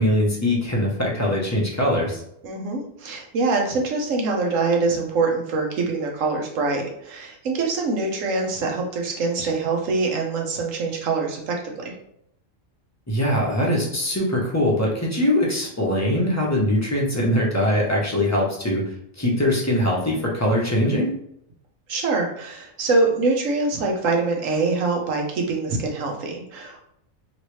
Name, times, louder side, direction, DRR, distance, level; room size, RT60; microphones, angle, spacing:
voice 1, 0.0-2.2 13.1-21.1, left 1 dB, 15° left, -3 dB, 0.6 m, -22 dB
voice 2, 2.4-11.9 21.9-26.8, right 3 dB, 75° right, 1 dB, 1.2 m, -24 dB
3.2 x 2.9 x 3.1 m, 0.72 s
omnidirectional pair, 1.4 m